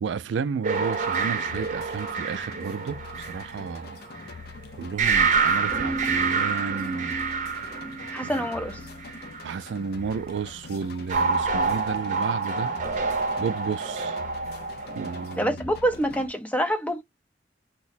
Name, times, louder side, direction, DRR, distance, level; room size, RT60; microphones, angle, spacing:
voice 1, 0.0-3.0 3.3-4.0 4.8-7.2 8.2-8.3 9.4-12.7 13.4-14.2 15.0-15.5, right 6 dB, 75° right, 0.3 m, -32 dB
sound 1, 0.6-4.3 5.0-9.4 11.1-15.4, right 5 dB, 45° right, 0.7 m, -27 dB
sound 2, 0.7-16.3, left 4 dB, 55° left, 0.5 m, -44 dB
voice 2, 8.1-8.8 15.4-17.0, equal, 10° left, 0.5 m, -26 dB
2.9 x 2.0 x 4.0 m
head